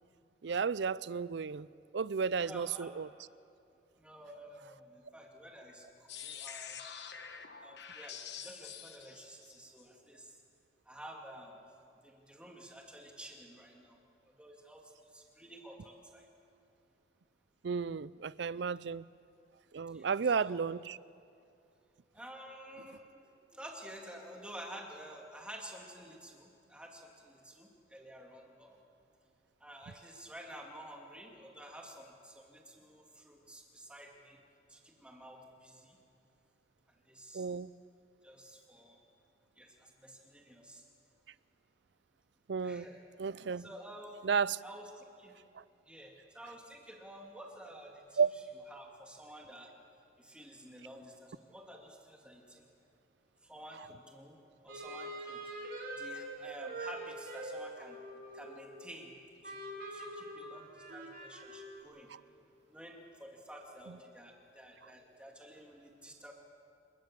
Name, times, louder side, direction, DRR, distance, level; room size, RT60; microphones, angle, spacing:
voice 1, 0.4-1.7 1.9-3.1 17.6-19.0 19.7-21.0 37.3-37.7 42.5-42.9 43.2-43.7 44.2-44.6 48.2-48.3, right 5 dB, 65° right, 0.5 m, -33 dB
voice 2, 2.4-3.0 4.0-6.8 7.6-10.4 10.8-11.6 12.0-16.3 19.9-20.6 22.1-28.8 29.6-34.4 34.7-36.0 36.9-37.5 38.2-39.0 39.6-40.8 42.6-43.0 43.6-44.2 44.6-45.3 45.9-49.7 50.2-52.6 53.4-54.4 54.6-55.5 55.9-58.0 58.3-59.6 59.9-62.1 62.7-66.3, right 1 dB, 5° right, 2.7 m, -51 dB
sound 1, 6.1-9.8, left 8 dB, 60° left, 1.4 m, -46 dB
sound 2, 54.7-59.0 59.4-61.8, right 1 dB, 50° right, 3.1 m, -44 dB
28.5 x 18.5 x 7.5 m
head